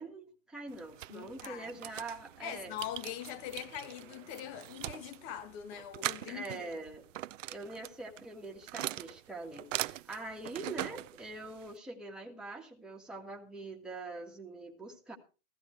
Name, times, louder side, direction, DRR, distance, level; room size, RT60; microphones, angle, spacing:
voice 1, 0.0-2.7 6.3-7.0 7.5-15.2, right 2 dB, ahead, 1.7 m, -44 dB
sound 1, 0.7-11.8, right 14 dB, 65° right, 0.6 m, -42 dB
voice 2, 1.1-1.8 2.4-6.8, left 11 dB, 30° left, 1.4 m, -42 dB
15.5 x 14.5 x 3.3 m
hypercardioid pair, 150°, 41 cm